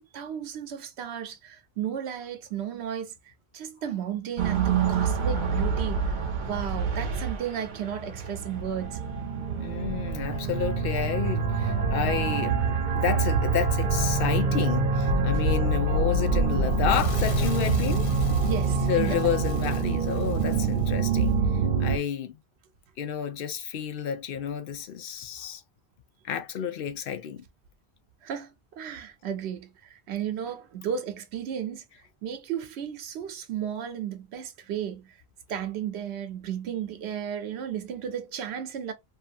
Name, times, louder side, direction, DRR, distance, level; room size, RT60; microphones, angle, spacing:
voice 1, 0.0-3.1 3.5-6.1 6.4-9.0 18.4-19.4 21.6-21.7 28.2-31.8 32.2-35.2 35.5-38.9, right 8 dB, 85° right, 0.9 m, -34 dB
sound 1, 4.4-22.0, right 4 dB, 55° right, 0.7 m, -26 dB
voice 2, 9.6-12.6 12.9-18.1 18.8-21.4 21.8-22.4 23.0-25.6 26.2-27.4, left 8 dB, 65° left, 0.7 m, -30 dB
Fire / Explosion, 16.5-21.3, left 2 dB, 85° left, 1.1 m, -37 dB
2.7 x 2.3 x 2.4 m
omnidirectional pair, 1.1 m